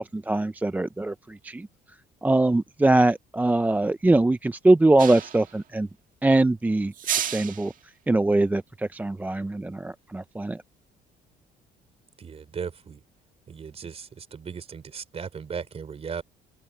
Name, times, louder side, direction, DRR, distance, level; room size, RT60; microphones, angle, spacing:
voice 1, 0.0-1.7 2.2-5.9 6.2-7.7 8.1-10.6, right 2 dB, 10° right, 0.5 m, -22 dB
sound 1, 5.0-5.5 6.9-7.7, right 9 dB, 55° right, 1.6 m, -30 dB
voice 2, 12.2-13.0 13.5-16.2, right 6 dB, 35° right, 4.0 m, -37 dB
open air
cardioid pair, 110°, 17 cm